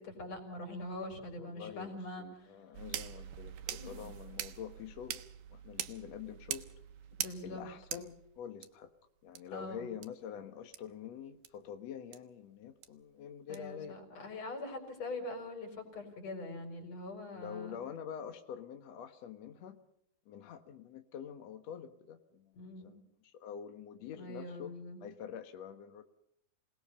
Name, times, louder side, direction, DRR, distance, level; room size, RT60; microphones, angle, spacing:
voice 1, 0.0-2.5 3.8-4.1 7.2-7.6 9.5-9.9 13.5-17.8 22.6-22.9 24.1-25.0, left 2 dB, 40° left, 4 dB, 5.4 m, -43 dB
voice 2, 1.4-5.2 5.5-6.7 7.4-8.9 9.2-14.0 17.3-19.8 20.3-26.0, left 8 dB, 65° left, 7 dB, 1.7 m, -46 dB
sound 1, 2.7-8.7 9.4-9.5 10.0-10.1 10.7-10.8 11.4-11.5 12.1-12.2 12.8-12.9 13.5-13.6, right 12 dB, 70° right, 2.8 m, -43 dB
27.5 x 19.5 x 5.5 m, 0.73 s
omnidirectional pair, 4.7 m